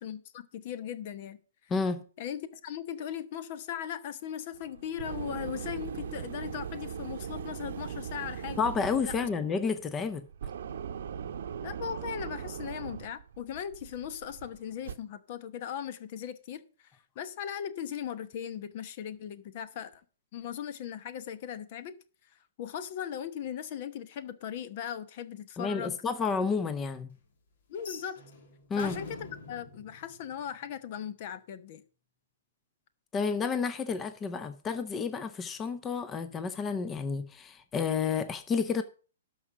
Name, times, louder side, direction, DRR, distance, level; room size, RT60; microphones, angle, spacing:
voice 1, 0.0-1.4 2.2-8.6 9.1-9.3 11.6-16.9 17.2-20.0 20.3-22.0 22.6-25.9 27.7-28.2 28.8-29.2 29.5-31.8, left 9 dB, 45° left, 1.0 m, -38 dB
voice 2, 1.7-2.0 8.6-10.3 25.6-27.1 28.7-29.0 33.1-38.8, left 5 dB, 20° left, 0.8 m, -30 dB
sound 1, 4.5-14.9, right 8 dB, 60° right, 0.9 m, -40 dB
sound 2, 27.7-30.8, left 3 dB, 60° left, 2.3 m, -46 dB
12.0 x 4.9 x 6.8 m
figure-of-eight pair, 120°, 0 cm